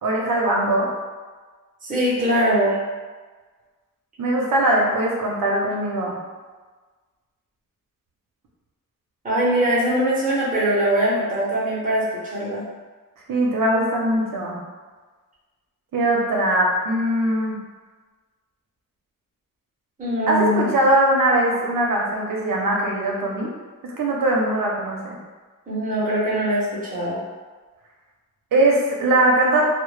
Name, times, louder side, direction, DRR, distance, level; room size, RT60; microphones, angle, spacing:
voice 1, 0.0-0.9 4.2-6.1 13.3-14.6 15.9-17.6 20.3-23.5 23.8-25.2 28.5-29.7, right 1 dB, 75° right, -2 dB, 0.6 m, -21 dB
voice 2, 1.8-2.8 9.2-12.6 20.0-20.6 25.7-27.2, right 1 dB, 25° right, -8 dB, 0.6 m, -22 dB
2.1 x 2.1 x 3.1 m, 1.4 s
wide cardioid pair, 180°, 33 cm